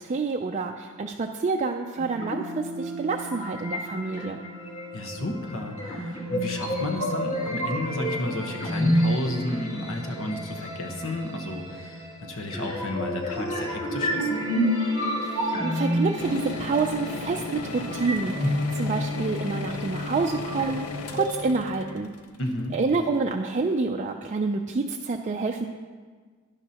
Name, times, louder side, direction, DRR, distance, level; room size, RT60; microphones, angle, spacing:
voice 1, 0.0-4.4 15.2-22.1 22.7-25.7, right 4 dB, 35° right, 3 dB, 0.4 m, -28 dB
sound 1, 2.0-21.9, equal, 35° left, 2.6 m, -30 dB
voice 2, 4.9-14.3 22.4-22.8, left 1 dB, 65° left, 3 dB, 1.2 m, -32 dB
sound 2, 16.2-23.1, left 4 dB, 85° left, 0.8 m, -37 dB
11.5 x 10.5 x 2.9 m, 1.5 s
head